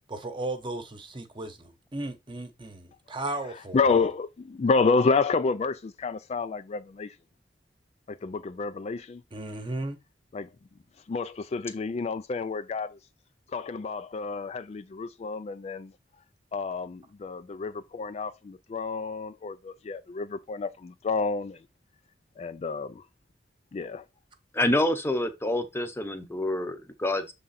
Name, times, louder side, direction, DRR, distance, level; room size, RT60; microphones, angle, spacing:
voice 1, 0.1-4.1 9.3-10.0, right 2 dB, 25° right, 0.9 m, -35 dB
voice 2, 3.7-7.1 8.1-9.2 10.3-10.5 11.1-13.0 13.5-15.9 16.5-21.6 22.4-23.0 23.7-24.0, left 4 dB, 35° left, 0.3 m, -29 dB
voice 3, 24.5-27.3, left 1 dB, 15° left, 0.7 m, -27 dB
6.8 x 3.7 x 4.0 m
head